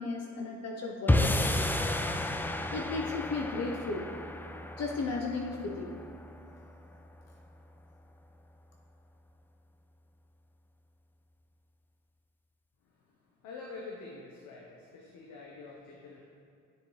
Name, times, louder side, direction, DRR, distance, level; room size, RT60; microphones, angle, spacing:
voice 1, 0.0-1.4 2.4-4.1 4.8-6.0, left 3 dB, 55° left, 0 dB, 0.8 m, -35 dB
sound 1, 1.1-7.4, left 1 dB, 5° left, 0.4 m, -32 dB
voice 2, 13.4-14.7 14.9-16.2, left 3 dB, 90° left, -2 dB, 1.0 m, -45 dB
9.9 x 6.6 x 3.2 m, 2.3 s
cardioid pair, 90°, 30 cm